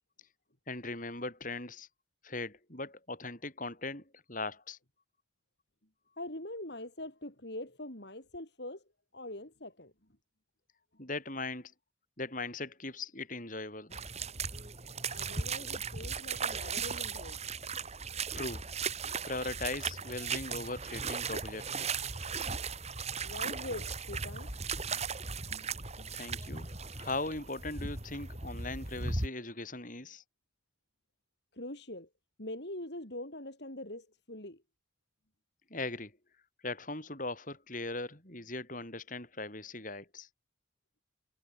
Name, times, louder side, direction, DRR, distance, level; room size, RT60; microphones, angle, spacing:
voice 1, 0.7-1.9 2.2-4.8 11.0-11.7 12.2-14.0 18.3-18.6 19.2-21.7 26.1-30.2 35.7-36.1 36.6-40.3, left 2 dB, 40° left, 7.6 m, -39 dB
voice 2, 6.2-8.8 9.1-9.9 15.1-17.4 23.2-26.1 31.5-32.1 32.4-34.6, left 1 dB, 60° left, 5.0 m, -44 dB
sound 1, 13.9-29.3, right 5 dB, 35° right, 5.1 m, -37 dB
head